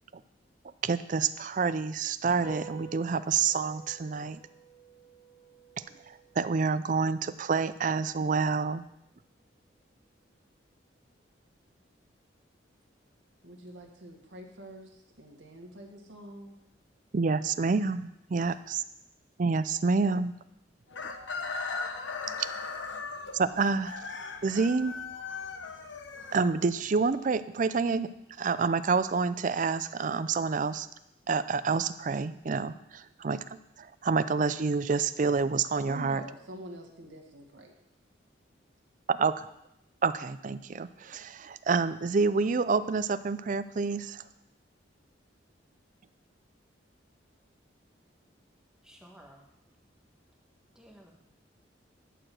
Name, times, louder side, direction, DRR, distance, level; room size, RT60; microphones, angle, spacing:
voice 1, 0.8-4.4 6.1-8.8 17.1-18.8 19.4-20.3 22.4-22.5 23.3-24.0 24.4-24.9 26.3-28.1 28.4-30.9 31.3-33.4 33.8-36.2 39.1-39.5 40.0-44.2, right 4 dB, 45° right, 0.4 m, -28 dB
sound 1, 2.4-9.1, right 6 dB, 20° left, 1.6 m, -51 dB
voice 2, 13.4-16.6 18.4-18.5 35.9-37.8, equal, 85° right, 1.7 m, -46 dB
Chicken rooster, 20.9-26.9, left 4 dB, 80° left, 0.9 m, -38 dB
voice 3, 48.8-49.5 50.7-51.1, equal, 5° right, 1.4 m, -54 dB
11.0 x 4.8 x 7.6 m
head